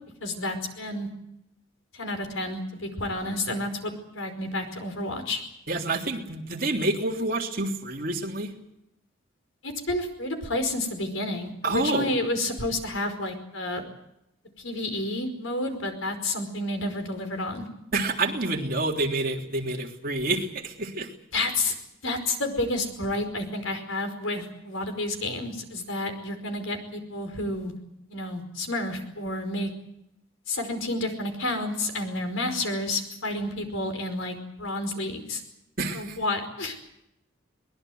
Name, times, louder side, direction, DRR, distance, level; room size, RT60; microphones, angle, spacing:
voice 1, 0.2-1.1 1.9-5.4 9.6-13.8 14.6-17.7 21.3-21.7 22.0-27.7 28.1-29.7 30.5-35.4 35.9-36.8, left 2 dB, 85° left, 6 dB, 5.0 m, -30 dB
voice 2, 5.7-8.5 11.6-12.1 17.9-21.1 35.8-36.2, right 2 dB, 45° right, 1 dB, 3.3 m, -28 dB
23.0 x 21.0 x 7.9 m, 0.82 s
head